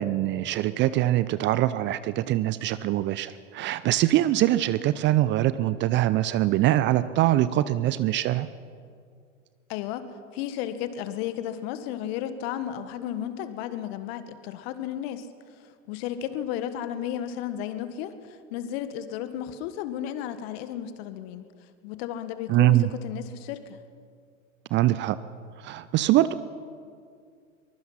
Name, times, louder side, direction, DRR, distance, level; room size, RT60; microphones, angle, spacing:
voice 1, 0.0-8.5 22.5-22.9 24.7-25.2 25.6-26.3, right 14 dB, 30° right, 15 dB, 0.6 m, -23 dB
voice 2, 9.7-10.0 10.3-15.3 15.6-21.5 21.8-23.8, left 10 dB, 50° left, 11 dB, 1.7 m, -33 dB
23.0 x 21.0 x 5.8 m, 2.2 s
figure-of-eight pair, 90°, 40 cm